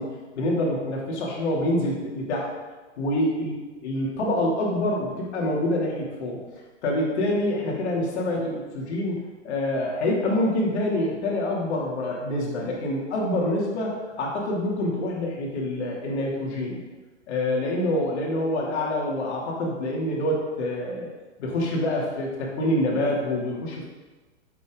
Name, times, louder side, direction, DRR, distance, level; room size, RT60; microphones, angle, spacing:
voice 1, 0.0-2.5 3.0-6.4 6.8-16.8 17.3-21.1 21.4-23.9, left 1 dB, 60° left, -3 dB, 3.1 m, -26 dB
9.3 x 7.5 x 3.9 m, 1.2 s
hypercardioid pair, 125°, 37 cm